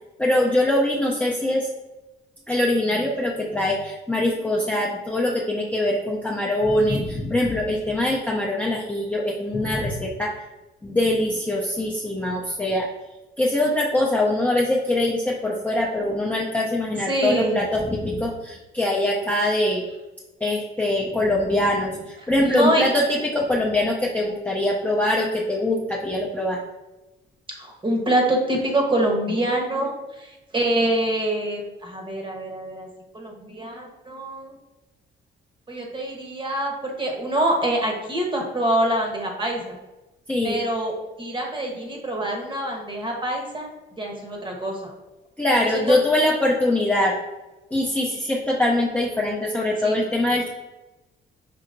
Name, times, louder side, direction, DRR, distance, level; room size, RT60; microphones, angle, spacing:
voice 1, 0.2-1.7 2.5-10.4 10.8-12.9 13.4-19.9 20.4-26.6 40.3-40.6 45.4-47.1 47.7-50.5, left 1 dB, 5° left, -4 dB, 0.5 m, -23 dB
voice 2, 17.1-17.6 22.4-22.8 27.5-32.9 33.1-34.6 35.7-39.7 40.4-43.7 44.0-44.9 45.7-46.0 49.8-50.0, right 1 dB, 25° right, 1 dB, 1.0 m, -25 dB
5.4 x 2.8 x 2.5 m, 1.1 s
cardioid pair, 90°, 20 cm